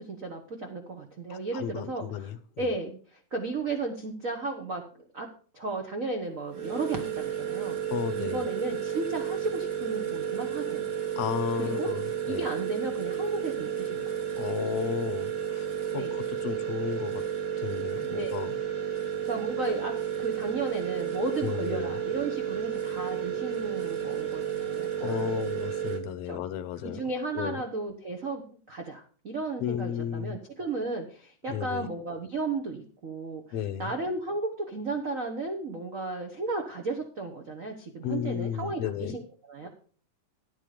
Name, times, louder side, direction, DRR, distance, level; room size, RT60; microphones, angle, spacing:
voice 1, 0.0-4.8 5.1-5.3 5.5-7.8 8.2-10.9 11.6-11.9 12.3-14.0 15.9-16.2 18.1-18.4 19.3-25.4 26.2-26.4 26.8-39.7, right 3 dB, 65° right, 3 dB, 0.8 m, -34 dB
voice 2, 1.3-2.7 7.9-8.5 11.2-12.5 14.4-15.7 15.9-17.2 17.6-18.6 21.4-22.0 25.0-27.0 27.3-27.6 29.6-30.4 31.5-31.9 33.5-33.9 38.0-39.1, left 10 dB, 70° left, 14 dB, 1.7 m, -33 dB
sound 1, 6.5-26.0, right 9 dB, 45° right, 1.6 m, -32 dB
10.5 x 9.2 x 5.0 m, 0.42 s
omnidirectional pair, 3.4 m